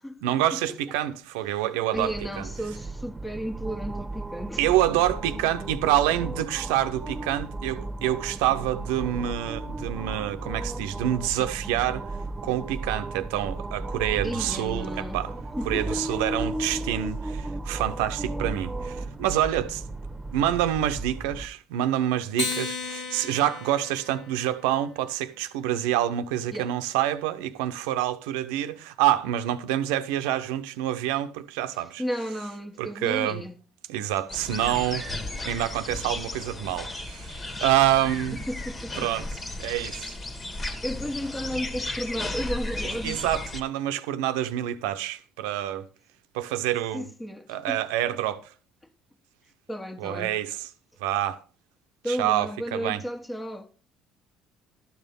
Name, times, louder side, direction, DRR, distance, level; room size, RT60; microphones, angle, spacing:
voice 1, 0.2-2.5 4.6-12.1 12.4-15.3 15.7-19.8 20.3-32.0 32.8-33.4 33.9-35.1 35.4-38.4 39.0-39.3 39.6-40.2 43.0-45.9 46.3-47.1 47.5-48.4 50.0-50.7 51.0-51.4 52.1-53.0, right 12 dB, 75° right, 0.8 m, -27 dB
voice 2, 1.9-4.6 14.2-15.2 15.6-16.2 26.5-26.7 32.0-33.6 34.9-35.1 38.3-39.1 39.6-39.7 40.8-43.2 46.9-47.8 49.7-50.4 52.0-53.7, equal, 15° left, 1.5 m, -33 dB
sound 1, 1.9-21.5, right 2 dB, 20° right, 1.3 m, -35 dB
Acoustic guitar, 22.3-25.0, left 4 dB, 65° left, 2.2 m, -34 dB
sound 2, 34.3-43.6, left 2 dB, 35° left, 1.9 m, -34 dB
12.0 x 7.2 x 5.3 m
hypercardioid pair, 60°, 0 cm